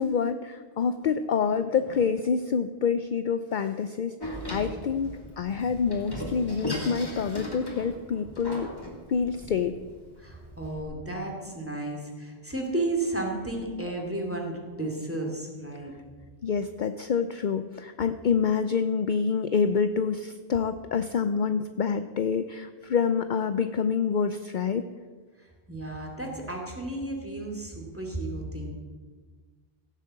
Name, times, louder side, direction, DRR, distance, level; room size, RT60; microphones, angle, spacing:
voice 1, 0.0-8.7 9.1-9.7 16.4-24.8, left 6 dB, 55° left, 10 dB, 0.7 m, -27 dB
Door, 4.2-10.8, equal, 20° left, 2.6 m, -37 dB
voice 2, 10.2-15.9 25.4-28.7, right 2 dB, 10° right, 0 dB, 2.5 m, -33 dB
16.0 x 7.6 x 7.5 m, 1.5 s
omnidirectional pair, 1.0 m